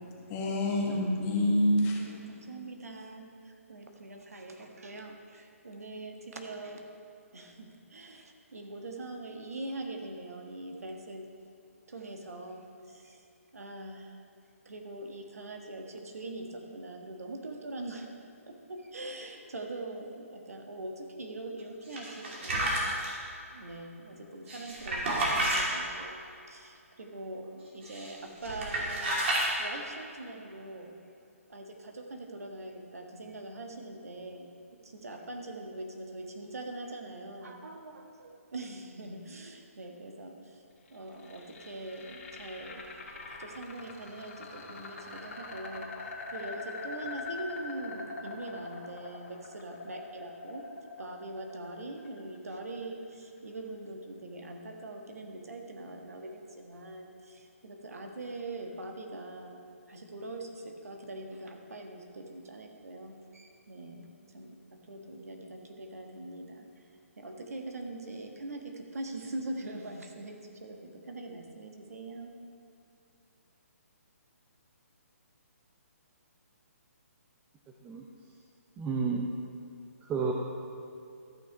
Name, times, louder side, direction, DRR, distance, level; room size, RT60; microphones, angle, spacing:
voice 1, 0.0-2.1, left 1 dB, 25° left, -2 dB, 1.5 m, -27 dB
voice 2, 2.1-6.8 7.3-11.2 11.9-13.2 13.5-14.2 14.6-18.1 18.5-22.7 23.0-23.2 23.5-26.2 26.5-30.9 31.5-34.5 34.7-40.6 40.9-42.8 43.3-45.9 46.3-50.7 51.0-59.6 59.9-66.8 67.2-72.3, right 2 dB, 75° right, 3 dB, 1.4 m, -42 dB
sound 1, 21.9-23.1 24.5-25.6 27.8-28.1 28.4-29.5, right 1 dB, 50° right, 2.6 m, -30 dB
sound 2, 40.9-52.9, left 4 dB, 55° left, 2.0 m, -43 dB
voice 3, 78.8-79.3 80.0-80.3, right 5 dB, 15° right, -1 dB, 0.6 m, -31 dB
13.5 x 6.0 x 4.7 m, 2.6 s
figure-of-eight pair, 140°, 8 cm